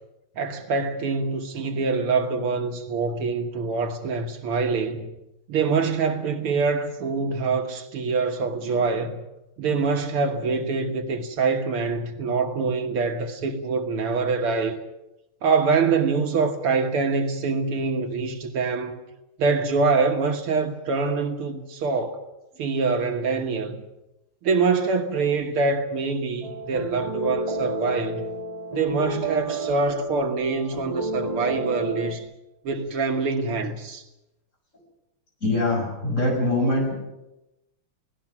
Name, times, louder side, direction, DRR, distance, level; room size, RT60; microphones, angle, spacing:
voice 1, 0.4-5.1 5.5-9.2 9.6-14.8 15.4-19.0 19.4-22.3 22.6-23.8 24.4-28.3 28.7-32.3 32.6-34.0, right 4 dB, 75° right, 2.2 m, -25 dB
sound 1, 26.4-32.1, right 2 dB, 20° right, 1.5 m, -31 dB
voice 2, 35.4-36.9, left 2 dB, 35° left, 6.5 m, -23 dB
29.5 x 18.0 x 6.0 m
omnidirectional pair, 2.4 m